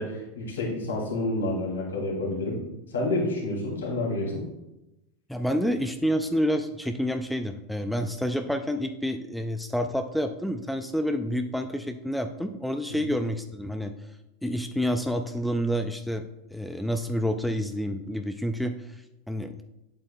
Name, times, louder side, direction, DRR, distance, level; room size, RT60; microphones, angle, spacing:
voice 1, 0.0-2.6 2.9-4.4, left 2 dB, 80° left, -3 dB, 2.6 m, -29 dB
voice 2, 5.3-14.1 14.4-16.2 16.5-19.6, equal, ahead, 7 dB, 0.4 m, -29 dB
8.8 x 7.5 x 2.2 m, 0.94 s
hypercardioid pair, 95°, 0 cm